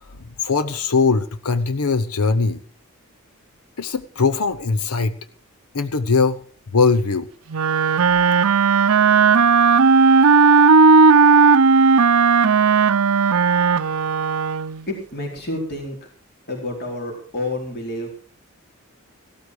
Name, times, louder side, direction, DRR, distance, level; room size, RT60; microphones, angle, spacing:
voice 1, 0.0-2.6 3.8-5.2 5.7-6.4 6.7-7.3, left 4 dB, 85° left, 10 dB, 0.8 m, -20 dB
Wind instrument woodwind instrument, 7.5-14.8, right 5 dB, 80° right, 0.6 m, -15 dB
voice 2, 14.9-16.0 16.5-18.1, left 1 dB, 50° left, 0 dB, 4.4 m, -29 dB
16.5 x 13.0 x 4.8 m, 0.41 s
head